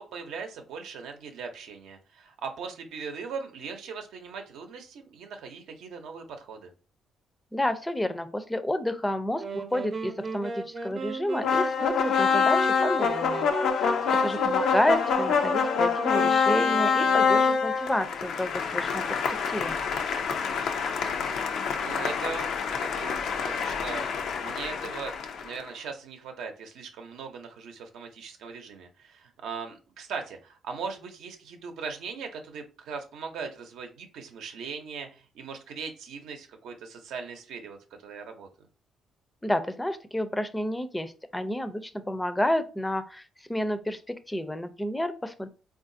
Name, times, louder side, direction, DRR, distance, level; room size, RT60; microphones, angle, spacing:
voice 1, 0.0-6.7 13.9-14.5 21.0-22.5 22.8-37.8 38.0-38.5, right 5 dB, 85° right, 4 dB, 0.7 m, -39 dB
voice 2, 7.5-19.8 39.4-45.5, left 1 dB, 10° left, 10 dB, 0.4 m, -30 dB
sound 1, 9.4-17.8, right 3 dB, 40° right, 0.6 m, -36 dB
sound 2, 11.4-25.6, left 6 dB, 75° left, 0.4 m, -26 dB
3.8 x 2.5 x 2.6 m, 0.34 s
cardioid pair, 90°, 0 cm